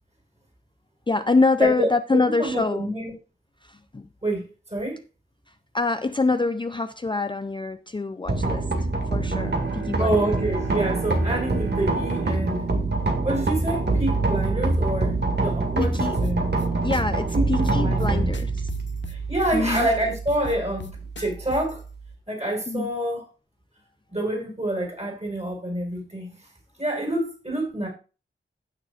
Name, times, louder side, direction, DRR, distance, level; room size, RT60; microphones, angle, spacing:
voice 1, 1.1-2.9 3.6-4.1 5.5-8.7 9.1-10.2 15.8-16.1 16.8-18.5 19.5-19.9 21.2-21.3 22.7-22.9, left 3 dB, 25° left, 0.4 m, -25 dB
voice 2, 2.4-3.1 4.2-5.0 10.0-12.7 13.2-16.5 17.3-18.3 19.1-21.8 22.3-23.2 24.1-26.4 26.8-27.9, right 1 dB, 30° right, 5.6 m, -27 dB
sound 1, 8.3-22.1, right 2 dB, 55° right, 2.0 m, -25 dB
Bowed string instrument, 9.1-14.4, right 6 dB, 85° right, 2.0 m, -37 dB
sound 2, 16.2-16.7 16.9-17.0 17.3-17.4 17.6-18.1 18.3-19.5 19.7-19.9 20.1-21.8, left 6 dB, 60° left, 0.7 m, -38 dB
16.0 x 6.6 x 2.4 m
wide cardioid pair, 90°, 21 cm